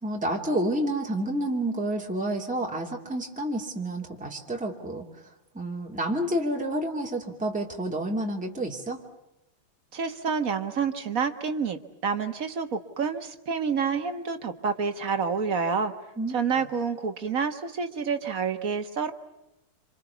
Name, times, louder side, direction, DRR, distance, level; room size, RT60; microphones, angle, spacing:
voice 1, 0.0-5.0 5.5-9.0 16.2-16.3, right 1 dB, 5° right, -1 dB, 2.6 m, -29 dB
voice 2, 9.9-15.9 16.3-19.1, right 5 dB, 40° right, 7 dB, 1.7 m, -28 dB
27.0 x 27.0 x 7.1 m, 0.88 s
omnidirectional pair, 2.4 m